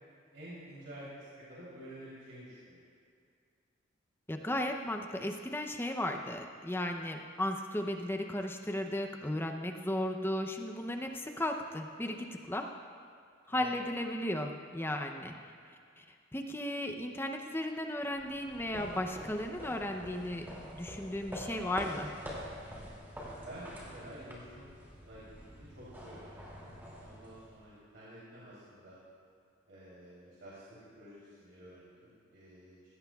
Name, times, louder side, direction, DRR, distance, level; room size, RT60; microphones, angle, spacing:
voice 1, 0.3-2.8 13.5-13.7 23.2-24.7 25.0-28.9 29.7-30.6 31.0-32.8, right 1 dB, 65° right, -9 dB, 3.4 m, -50 dB
voice 2, 4.3-12.7 13.5-15.3 16.0-16.1 16.3-20.5 20.7-22.1, left 1 dB, 10° left, 3 dB, 0.6 m, -35 dB
sound 1, 18.1-27.7, equal, 10° right, 2.5 m, -47 dB
18.5 x 16.0 x 2.3 m, 2.3 s
head